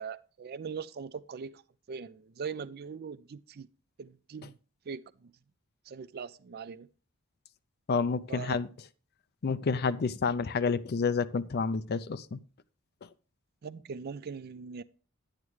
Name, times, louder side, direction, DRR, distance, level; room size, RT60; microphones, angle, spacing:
voice 1, 0.0-1.6 1.9-3.7 4.0-4.6 4.9-5.3 5.9-6.9 8.3-8.6 13.6-14.8, right 6 dB, 45° right, 0.4 m, -41 dB
voice 2, 7.9-8.7 9.4-12.4, left 5 dB, 45° left, 0.5 m, -29 dB
11.0 x 8.9 x 3.1 m
head